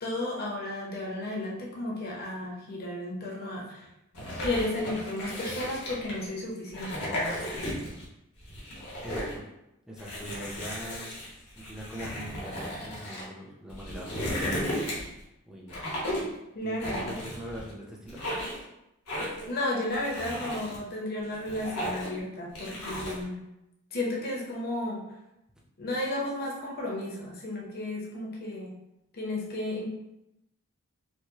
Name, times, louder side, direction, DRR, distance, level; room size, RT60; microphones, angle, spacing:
voice 1, 0.0-3.9 4.4-7.7 16.5-17.1 19.4-23.4 23.9-25.1 25.8-28.8 29.1-29.9, left 1 dB, 45° left, -3 dB, 0.8 m, -33 dB
sound 1, 4.1-6.3 6.7-8.1 8.4-9.4 10.0-13.2 13.7-15.2 15.7-16.4 16.8-17.7 18.1-18.6 19.1-19.5 19.9-20.8 21.2-22.2 22.6-23.2, equal, 85° left, 1.2 m, -35 dB
voice 2, 9.0-9.5 9.9-11.1 11.5-14.6 15.5-15.8 16.6-18.2, equal, 5° right, -4 dB, 0.6 m, -42 dB
4.6 x 2.1 x 2.8 m, 0.87 s
head